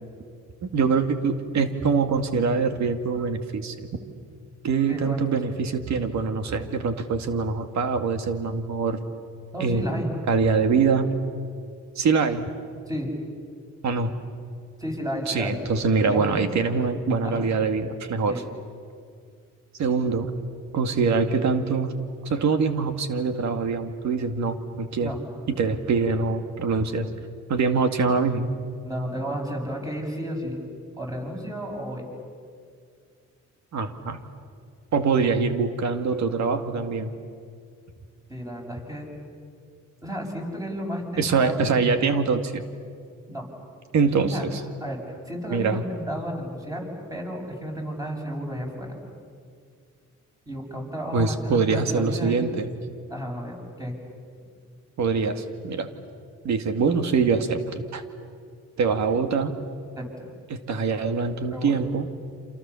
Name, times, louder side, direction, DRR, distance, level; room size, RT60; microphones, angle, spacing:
voice 1, 0.6-3.9 4.6-9.0 9.6-9.9 10.3-11.1 12.0-12.4 13.8-14.1 15.3-18.4 19.8-20.3 20.7-21.9 22.3-25.1 25.6-27.1 27.5-28.5 33.7-34.2 34.9-37.1 41.2-42.6 43.9-44.6 45.5-45.8 51.1-52.7 55.0-55.9 56.4-58.0 58.8-59.5 60.5-62.1, right 5 dB, 65° right, 7 dB, 2.2 m, -24 dB
voice 2, 4.9-5.4 9.5-10.1 12.9-13.1 14.8-15.6 16.1-16.5 17.2-17.5 18.3-18.4 25.0-25.2 28.8-30.6 31.0-32.1 38.3-39.1 40.0-41.7 43.3-43.5 44.3-44.5 44.8-45.0 45.3-49.0 50.5-52.4 53.1-54.0 60.0-60.2 61.5-61.8, equal, 10° right, 0 dB, 7.3 m, -32 dB
28.5 x 27.0 x 7.1 m, 2.2 s
cardioid pair, 90°, 30 cm